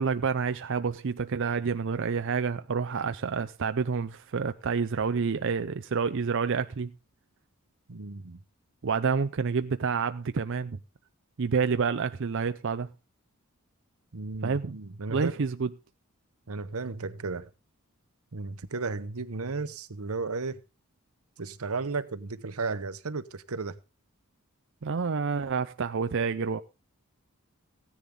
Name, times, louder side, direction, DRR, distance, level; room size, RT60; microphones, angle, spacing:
voice 1, 0.0-6.9 8.8-10.8 11.4-12.9 14.4-14.8 15.1-15.7 24.8-26.6, right 5 dB, 60° right, 0.5 m, -28 dB
voice 2, 7.9-8.4 14.1-15.4 16.5-17.5 18.3-20.6 21.4-23.8, right 4 dB, 90° right, 0.9 m, -34 dB
15.5 x 10.0 x 3.8 m
head